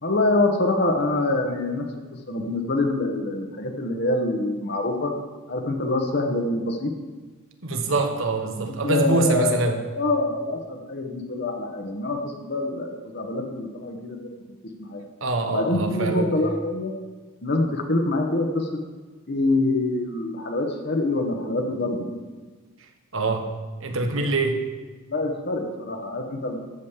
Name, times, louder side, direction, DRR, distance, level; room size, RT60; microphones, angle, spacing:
voice 1, 0.0-1.8 2.1-5.1 5.5-6.9 8.8-14.3 14.8-15.0 15.5-16.9 17.4-18.7 19.3-22.0 25.1-26.6, left 2 dB, 50° left, 4 dB, 1.2 m, -25 dB
voice 2, 7.6-9.8 15.2-16.3 23.1-23.5 23.8-24.6, right 2 dB, 60° right, 5 dB, 1.2 m, -24 dB
13.5 x 5.3 x 7.3 m, 1.3 s
head